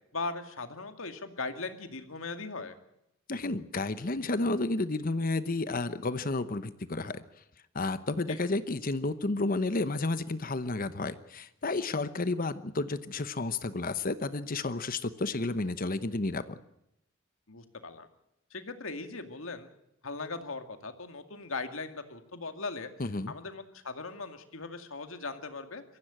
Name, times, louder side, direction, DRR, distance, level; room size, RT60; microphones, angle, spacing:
voice 1, 0.1-2.7 8.3-8.4 17.5-18.1 18.5-19.7 20.0-22.9 23.3-25.8, left 3 dB, 85° left, 7 dB, 2.2 m, -39 dB
voice 2, 3.3-7.2 7.7-16.6 23.0-23.3, left 2 dB, 45° left, 13 dB, 0.9 m, -31 dB
23.5 x 15.5 x 8.9 m, 0.83 s
head